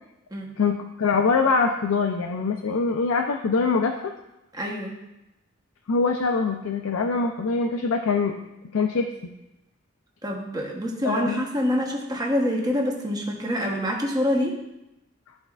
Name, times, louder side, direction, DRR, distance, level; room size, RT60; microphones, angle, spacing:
voice 1, 0.6-4.1 5.9-8.3 8.7-9.1 11.0-11.4, left 4 dB, 90° left, 3 dB, 0.5 m, -23 dB
voice 2, 4.5-4.9 10.2-14.6, equal, 20° right, -1 dB, 0.9 m, -26 dB
13.0 x 4.4 x 2.4 m, 0.95 s
head